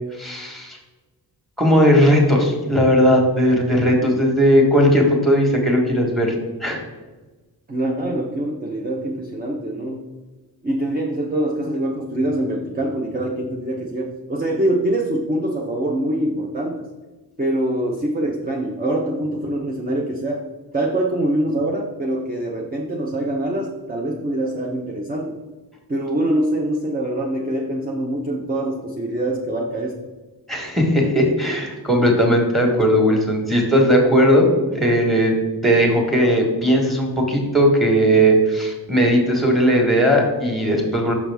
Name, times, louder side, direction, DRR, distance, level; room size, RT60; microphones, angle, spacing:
voice 1, 0.2-0.8 1.6-6.3 6.6-6.8 30.5-34.5 34.7-35.3 35.6-41.1, equal, ahead, 1 dB, 1.4 m, -17 dB
voice 2, 7.7-10.0 10.6-16.9 17.4-20.4 20.7-25.4 25.9-30.0 32.1-32.2, right 1 dB, 25° right, 0 dB, 0.6 m, -24 dB
6.0 x 5.8 x 3.4 m, 1.2 s
wide cardioid pair, 110°, 40 cm